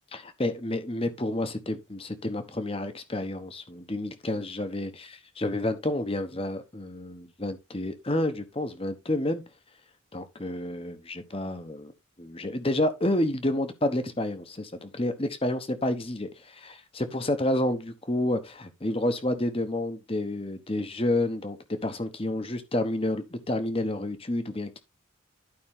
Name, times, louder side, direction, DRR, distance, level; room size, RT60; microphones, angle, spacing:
voice 1, 0.1-9.4 10.1-11.9 12.2-24.8, left 1 dB, 25° left, 1.1 m, -29 dB
11.5 x 5.3 x 3.6 m
head